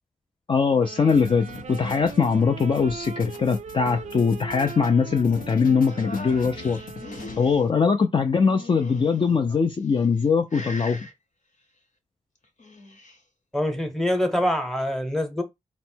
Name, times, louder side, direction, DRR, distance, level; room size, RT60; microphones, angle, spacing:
voice 1, 0.5-6.8 7.4-11.1, left 5 dB, 40° left, 0.4 m, -22 dB
sound 1, 0.8-7.8, right 7 dB, 55° right, 0.4 m, -40 dB
sound 2, 1.1-7.7, left 4 dB, 90° left, 0.7 m, -42 dB
sound 3, 5.9-7.6 8.4-9.3 9.9-10.2 10.5-11.1 12.4-13.2, left 2 dB, 65° left, 1.0 m, -41 dB
voice 2, 13.5-15.4, left 1 dB, 5° left, 0.8 m, -25 dB
4.3 x 2.0 x 4.4 m
wide cardioid pair, 125°, 14 cm